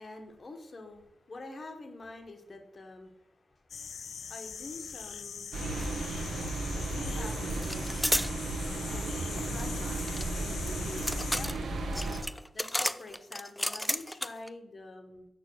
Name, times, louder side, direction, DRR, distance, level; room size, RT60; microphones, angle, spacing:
voice 1, 0.0-6.0 6.7-8.0 8.6-11.8 12.5-15.3, left 2 dB, 40° left, 5 dB, 1.2 m, -47 dB
sound 1, 3.7-11.5, left 6 dB, 70° left, 0.5 m, -42 dB
sound 2, 5.5-12.2, right 2 dB, 85° right, 1.3 m, -34 dB
sound 3, 5.8-5.9 6.2-6.9 7.6-8.3 9.6-14.5, left 1 dB, 5° left, 0.4 m, -33 dB
6.9 x 6.2 x 6.4 m, 0.88 s
wide cardioid pair, 150°, 0 cm